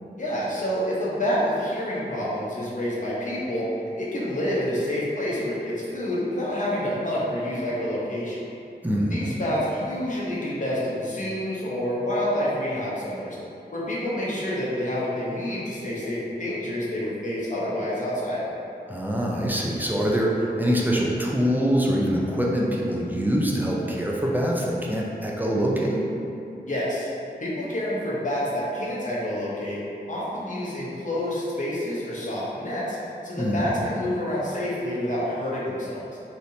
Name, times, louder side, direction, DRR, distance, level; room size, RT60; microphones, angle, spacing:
voice 1, 0.2-3.7 4.0-8.4 9.0-13.4 13.7-18.5 26.7-27.1 27.4-29.8 30.1-33.0 33.2-36.1, left 1 dB, 50° left, -7 dB, 0.9 m, -28 dB
voice 2, 8.8-9.4 18.9-26.0 33.4-33.7, equal, 10° right, -3 dB, 0.5 m, -24 dB
3.2 x 2.7 x 2.7 m, 2.7 s
cardioid pair, 50°, 17 cm